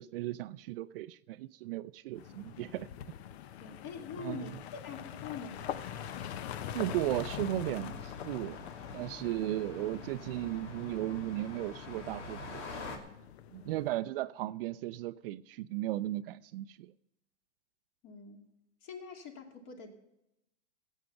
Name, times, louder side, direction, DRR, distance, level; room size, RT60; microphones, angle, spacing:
voice 1, 0.0-3.1 4.2-4.5 6.7-12.7 13.5-16.9, right 15 dB, 50° right, 0.5 m, -36 dB
sound 1, 2.1-14.0, left 10 dB, 60° left, 0.8 m, -44 dB
voice 2, 3.6-5.6 13.6-13.9 18.0-18.4 18.8-19.9, left 6 dB, 40° left, 2.4 m, -44 dB
sound 2, 5.5-13.0, left 4 dB, 75° left, 2.5 m, -47 dB
16.0 x 8.2 x 5.7 m
hypercardioid pair, 125°, 36 cm